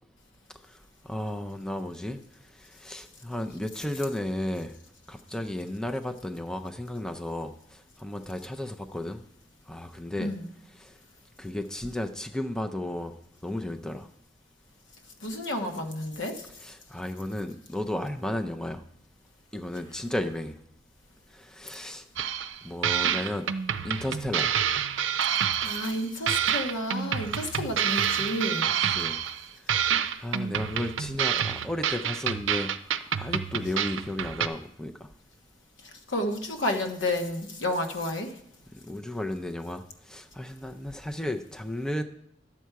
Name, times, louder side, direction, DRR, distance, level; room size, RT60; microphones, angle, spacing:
voice 1, 1.0-2.2 2.5-4.8 5.1-9.2 9.7-10.3 10.8-11.0 11.4-13.2 13.4-14.1 16.6-18.8 19.5-20.6 21.3-22.0 22.6-23.5 23.8-24.6 28.7-29.2 29.6-32.8 33.0-35.1 38.8-42.0, left 1 dB, 5° left, 7 dB, 0.4 m, -34 dB
voice 2, 15.2-16.5 25.3-28.7 36.1-38.3, left 1 dB, 85° left, 4 dB, 1.2 m, -31 dB
sound 1, 22.2-22.6 22.8-26.0 26.3-29.4 29.7-34.5, right 8 dB, 85° right, 0.5 m, -28 dB
11.5 x 7.3 x 4.6 m, 0.72 s
head